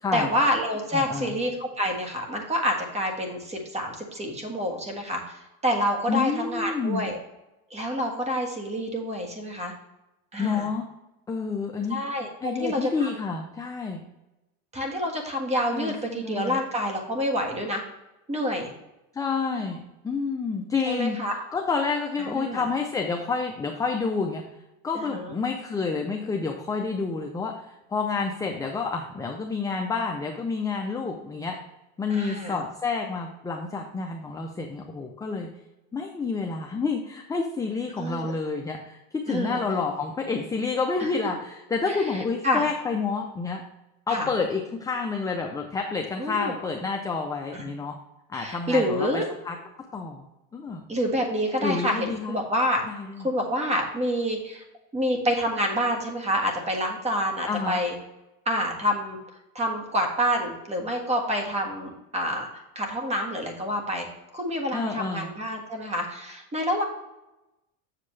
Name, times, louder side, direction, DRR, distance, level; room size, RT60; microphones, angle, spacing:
voice 1, 0.1-7.2 7.7-9.7 10.3-10.7 11.9-13.1 14.7-17.8 18.3-18.7 20.8-21.4 22.2-22.6 24.9-25.3 32.1-32.6 38.0-38.3 39.3-39.6 41.0-41.1 41.9-42.6 44.1-44.3 46.2-46.5 47.5-47.7 48.3-49.3 50.9-52.8 53.2-54.6 54.9-57.9 58.4-59.2 59.5-64.1 64.3-66.8, equal, 15° right, 2 dB, 1.5 m, -28 dB
voice 2, 0.9-1.3 6.1-7.0 10.4-10.8 11.3-12.0 12.4-14.0 15.7-16.6 19.1-21.2 21.5-24.4 24.8-27.5 27.9-31.6 32.0-35.5 35.9-43.6 44.1-48.0 48.3-49.6 49.9-50.2 50.5-50.9 51.6-52.3 52.9-53.3 57.5-57.8 64.7-65.3, left 4 dB, 10° left, 2 dB, 0.5 m, -29 dB
7.6 x 6.5 x 3.2 m, 0.95 s
supercardioid pair, 130°, 42 cm